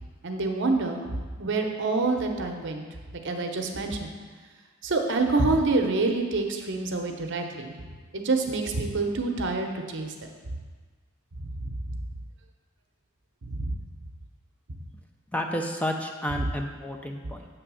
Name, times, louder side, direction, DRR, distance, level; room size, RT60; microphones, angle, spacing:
voice 1, 0.2-1.0 1.4-2.8 3.2-4.1 4.8-7.9 8.1-10.3 11.4-12.0 13.4-13.7, right 3 dB, 60° right, 3 dB, 0.7 m, -27 dB
voice 2, 15.3-17.5, equal, 5° left, 3 dB, 0.3 m, -31 dB
7.6 x 3.3 x 6.2 m, 1.5 s
head